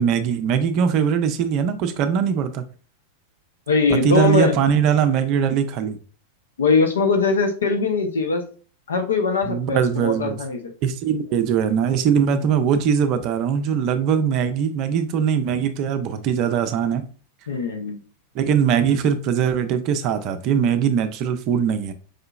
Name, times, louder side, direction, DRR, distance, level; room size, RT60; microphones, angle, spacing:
voice 1, 0.0-2.6 3.9-6.0 9.4-10.4 10.8-17.0 18.3-21.9, right 7 dB, 40° right, 0.5 m, -21 dB
voice 2, 3.7-4.6 6.6-8.4 8.9-10.7 17.5-18.0, left 4 dB, 70° left, 0.6 m, -21 dB
4.9 x 2.8 x 2.3 m
figure-of-eight pair, 90°, 0 cm